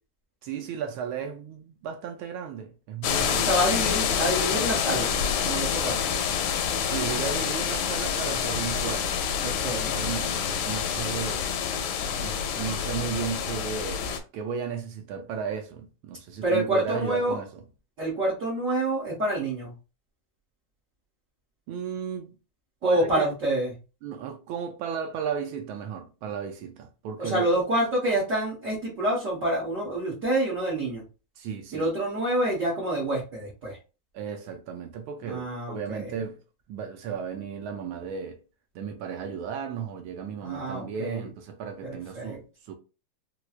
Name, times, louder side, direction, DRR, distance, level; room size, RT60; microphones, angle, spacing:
voice 1, 0.4-3.5 6.8-9.3 9.5-11.5 12.2-17.5 21.7-22.4 22.8-23.3 24.0-27.4 31.4-31.9 34.1-36.4 36.7-38.4 38.7-42.7, right 7 dB, 75° right, 1.3 m, -34 dB
sound 1, 3.0-14.2, left 7 dB, 85° left, 1.5 m, -27 dB
voice 2, 3.4-5.1 5.4-6.0 9.4-10.0 16.4-17.4 18.0-19.7 22.8-23.7 27.2-31.0 31.7-33.8 35.2-36.1 40.4-41.3 41.8-42.4, right 1 dB, 45° right, 1.3 m, -27 dB
4.3 x 2.2 x 2.4 m
omnidirectional pair, 2.4 m